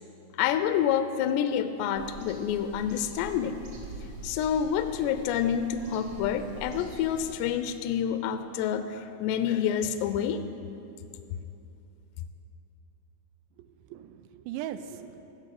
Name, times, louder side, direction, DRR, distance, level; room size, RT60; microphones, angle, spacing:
voice 1, 0.4-3.6 4.2-10.4, left 8 dB, 85° left, 10 dB, 2.4 m, -28 dB
sound 1, 1.9-7.4, right 2 dB, 55° right, 1.2 m, -45 dB
voice 2, 13.6-15.3, right 10 dB, 85° right, 11 dB, 2.7 m, -40 dB
15.0 x 6.6 x 8.2 m, 2.8 s
omnidirectional pair, 5.3 m